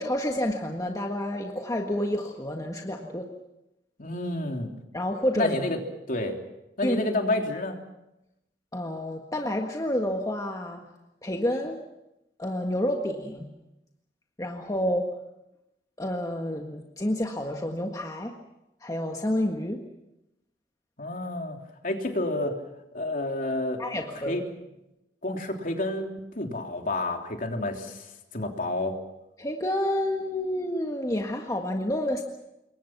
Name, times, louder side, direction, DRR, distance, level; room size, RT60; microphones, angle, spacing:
voice 1, 0.0-3.3 4.9-5.5 6.8-7.0 8.7-10.9 11.2-11.8 12.4-13.5 14.4-15.2 16.0-18.3 18.8-19.8 23.8-24.4 29.4-32.2, left 1 dB, 20° left, 2 dB, 1.6 m, -29 dB
voice 2, 4.0-4.7 5.3-5.8 6.1-6.4 6.8-7.8 21.0-21.6 21.8-22.6 22.9-23.8 24.2-24.4 25.2-26.1 26.3-29.0, left 2 dB, 50° left, 3 dB, 3.3 m, -29 dB
27.5 x 22.5 x 6.0 m, 0.91 s
head